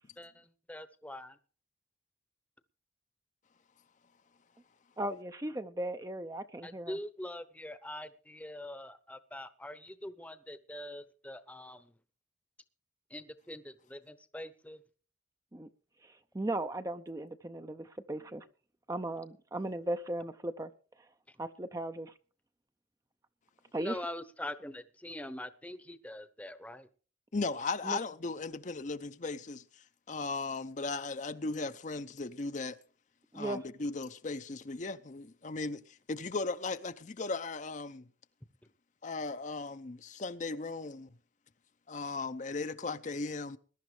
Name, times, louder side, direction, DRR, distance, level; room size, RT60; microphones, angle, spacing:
voice 1, 0.2-1.4 6.6-11.9 13.1-14.8 21.3-21.4 23.7-26.9, left 1 dB, 10° left, 0.8 m, -44 dB
voice 2, 5.0-7.0 15.5-15.7 16.0-18.5 18.9-20.7 21.0-21.1 21.4-22.1 23.7-24.0 27.8-28.0 33.3-33.6, right 1 dB, 15° right, 0.5 m, -37 dB
voice 3, 27.3-29.6 30.1-32.8 33.3-38.1 39.0-41.1 41.9-43.6, left 3 dB, 40° left, 0.6 m, -37 dB
21.0 x 11.5 x 3.3 m
head